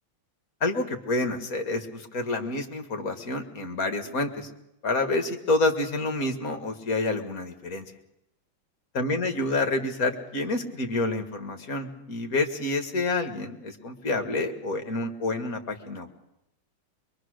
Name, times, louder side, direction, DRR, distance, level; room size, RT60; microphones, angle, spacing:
voice 1, 0.6-4.5 4.8-7.9 8.9-16.1, left 2 dB, 45° left, 6 dB, 2.1 m, -28 dB
23.5 x 23.0 x 6.5 m, 0.87 s
omnidirectional pair, 2.3 m